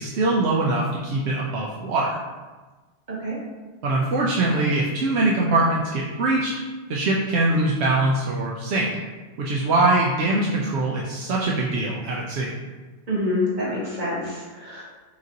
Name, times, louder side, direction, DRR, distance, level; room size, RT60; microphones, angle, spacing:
voice 1, 0.0-2.2 3.8-6.5 6.9-8.9 9.4-12.5, right 2 dB, 80° right, -4 dB, 0.9 m, -22 dB
voice 2, 13.1-14.8, left 1 dB, 45° right, -8 dB, 1.6 m, -26 dB
5.9 x 2.5 x 2.8 m, 1.3 s
omnidirectional pair, 1.1 m